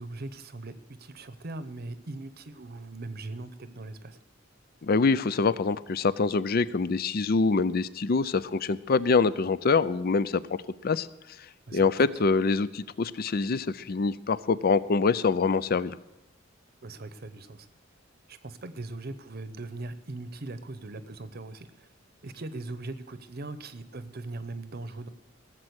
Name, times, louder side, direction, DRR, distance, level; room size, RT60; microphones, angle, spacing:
voice 1, 0.0-4.2 11.7-12.0 16.8-17.7 18.3-21.9 22.2-25.1, right 2 dB, 50° right, 12 dB, 0.8 m, -40 dB
voice 2, 4.8-10.4 10.8-11.1 11.7-16.0, left 4 dB, 50° left, 17 dB, 0.5 m, -25 dB
18.0 x 7.6 x 8.0 m, 0.98 s
head